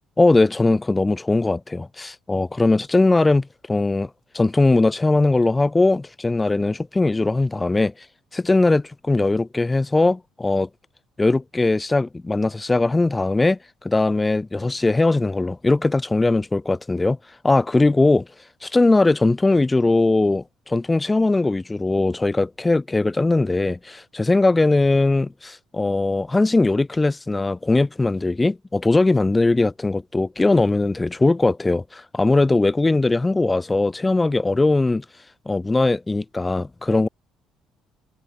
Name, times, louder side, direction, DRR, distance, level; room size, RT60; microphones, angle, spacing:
voice 1, 0.2-7.9 8.3-10.7 11.2-13.6 13.8-17.2 17.4-18.3 18.6-35.0 35.5-37.1, left 2 dB, 20° left, 7.7 m, -20 dB
supercardioid pair, 65°, 0 cm